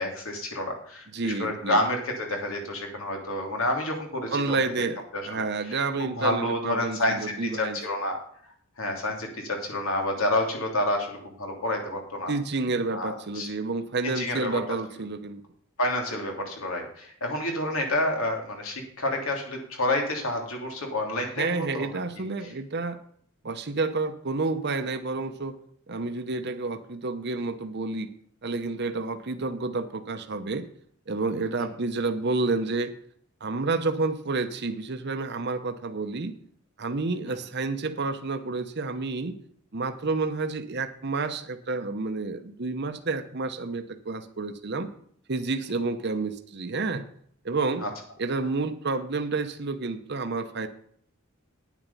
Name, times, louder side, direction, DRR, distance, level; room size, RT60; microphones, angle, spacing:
voice 1, 0.0-4.4 5.1-5.4 5.7-8.2 8.8-12.3 12.9-13.5 14.1-14.6 15.8-21.9 22.2-22.5 47.8-47.9, left 1 dB, 85° left, 2 dB, 2.9 m, -29 dB
voice 2, 1.1-1.8 4.3-5.0 5.3-7.8 12.3-15.4 21.4-23.0 23.4-25.6 25.9-28.1 28.4-30.7 31.1-32.9 33.4-36.3 36.8-39.4 39.7-44.9 45.3-47.0 47.4-47.8 48.2-50.7, right 3 dB, 55° right, 8 dB, 0.9 m, -29 dB
9.5 x 9.1 x 5.5 m, 0.62 s
head